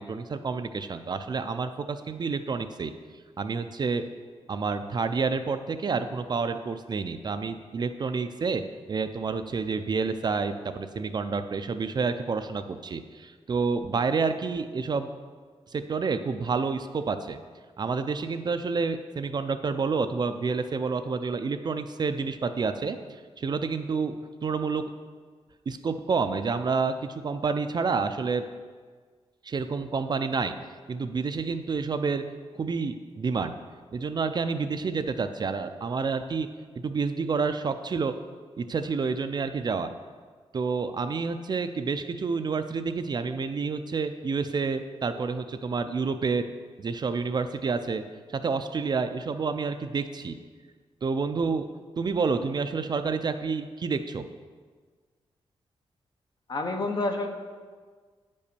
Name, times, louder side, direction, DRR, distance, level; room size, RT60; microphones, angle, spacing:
voice 1, 0.0-2.9 3.4-4.0 4.5-8.6 8.9-15.1 15.7-17.4 17.8-23.0 23.4-24.8 25.7-28.5 29.4-30.5 30.9-32.2 32.5-33.6 33.9-36.5 36.8-38.1 38.6-39.9 40.5-46.5 46.8-48.0 48.3-50.4 51.0-51.7 52.0-54.3, right 4 dB, 45° right, 9 dB, 0.5 m, -29 dB
voice 2, 56.5-57.3, left 2 dB, 45° left, 4 dB, 1.0 m, -28 dB
9.7 x 5.4 x 6.8 m, 1.5 s
wide cardioid pair, 155°, 10 cm